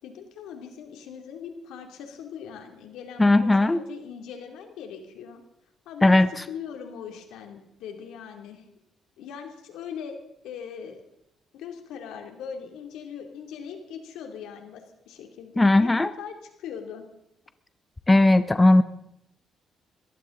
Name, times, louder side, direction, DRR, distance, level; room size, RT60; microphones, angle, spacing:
voice 1, 0.0-5.4 5.9-6.2 6.5-8.6 9.2-10.2 10.4-11.0 11.5-15.9 16.2-17.0, left 7 dB, 90° left, 4 dB, 2.7 m, -40 dB
voice 2, 3.2-3.8 6.0-6.3 15.6-16.1 18.1-18.8, left 2 dB, 15° left, 12 dB, 0.7 m, -17 dB
21.5 x 15.5 x 3.9 m, 0.79 s
cardioid pair, 90°, 0 cm